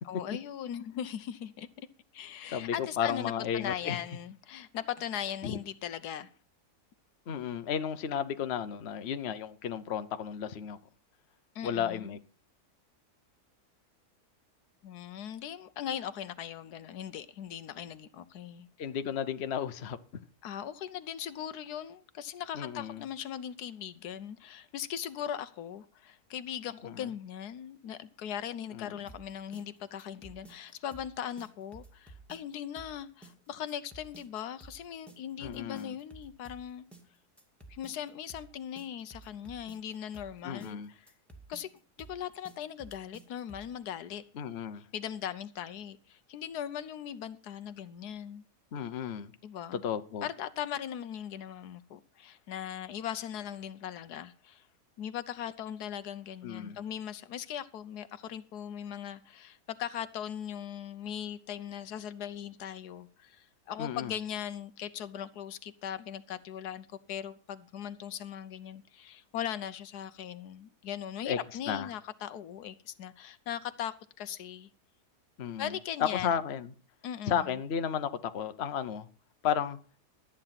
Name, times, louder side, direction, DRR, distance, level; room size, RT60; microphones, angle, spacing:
voice 1, 0.0-1.9 2.1-6.3 11.5-12.2 14.8-18.7 20.4-36.9 37.7-41.1 41.5-41.7 42.0-44.2 44.9-48.4 49.4-49.8 50.2-54.7 55.0-74.7 75.6-76.4 77.0-77.5, left 9 dB, 80° left, 1.3 m, -39 dB
voice 2, 2.5-4.0 5.4-5.6 7.3-10.8 11.6-12.2 18.8-20.2 22.5-23.1 26.8-27.1 28.7-29.0 35.4-35.9 40.4-40.9 44.3-44.8 48.7-49.3 49.7-50.3 56.4-56.8 63.8-64.1 71.2-71.4 71.7-71.9 75.4-75.7 76.0-76.7 77.3-79.1 79.4-79.8, left 8 dB, 50° left, 1.0 m, -33 dB
sound 1, 29.1-43.8, right 2 dB, ahead, 2.0 m, -53 dB
13.5 x 8.9 x 5.8 m
omnidirectional pair, 1.7 m